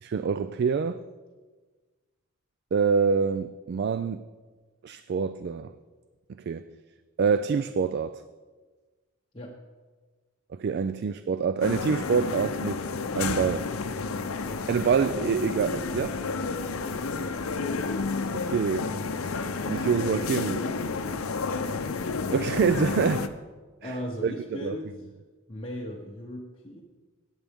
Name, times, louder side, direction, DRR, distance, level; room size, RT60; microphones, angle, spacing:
voice 1, 0.0-1.0 2.7-4.3 4.8-5.7 6.5-6.7 7.2-8.2 10.6-12.8 13.1-13.7 14.7-16.2 18.3-18.9 19.7-20.7 22.3-23.3 23.8-23.9 24.2-24.8, right 6 dB, 50° right, 13 dB, 0.3 m, -26 dB
sound 1, 11.6-23.3, left 4 dB, 85° left, 0.6 m, -31 dB
voice 2, 23.8-24.9 25.5-26.8, left 1 dB, 25° left, -1 dB, 0.9 m, -37 dB
17.0 x 9.0 x 3.6 m, 1.3 s
head